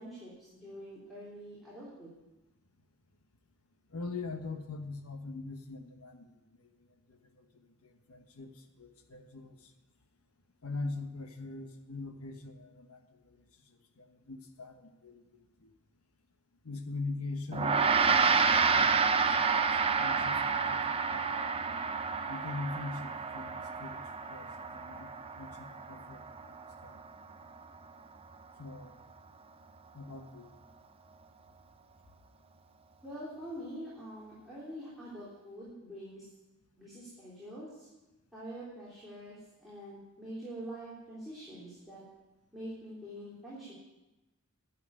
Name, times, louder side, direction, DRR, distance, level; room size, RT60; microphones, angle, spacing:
voice 1, 0.0-2.2 33.0-36.3 36.8-37.9 38.3-42.0 42.5-43.7, equal, ahead, -10 dB, 3.4 m, -45 dB
voice 2, 3.9-9.7 10.6-13.4 13.7-15.7 16.6-20.8 21.1-21.3 22.3-24.0 24.3-26.5 26.8-27.0 28.6-29.0 29.9-30.5, left 3 dB, 90° left, 5 dB, 1.2 m, -43 dB
Gong, 17.5-27.1, right 5 dB, 25° right, 0.7 m, -29 dB
11.0 x 7.4 x 9.6 m, 1.0 s
head